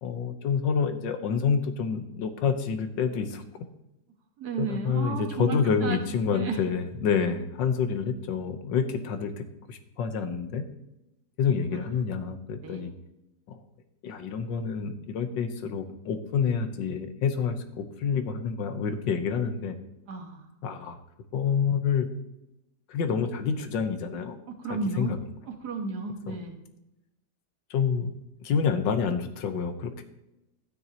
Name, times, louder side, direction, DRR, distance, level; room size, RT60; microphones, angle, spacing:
voice 1, 0.0-3.5 4.6-10.6 11.4-12.9 13.5-13.6 14.0-19.8 20.6-21.0 21.3-22.1 22.9-24.4 24.7-25.2 26.3-26.4 27.7-28.1 28.4-30.0, left 6 dB, 85° left, 9 dB, 1.6 m, -28 dB
voice 2, 4.4-6.0 6.3-6.6 11.7-11.8 12.6-12.9 20.1-20.4 24.5-25.2 25.5-26.6, right 4 dB, 65° right, 4 dB, 1.8 m, -33 dB
12.5 x 9.5 x 2.9 m, 0.92 s
omnidirectional pair, 1.9 m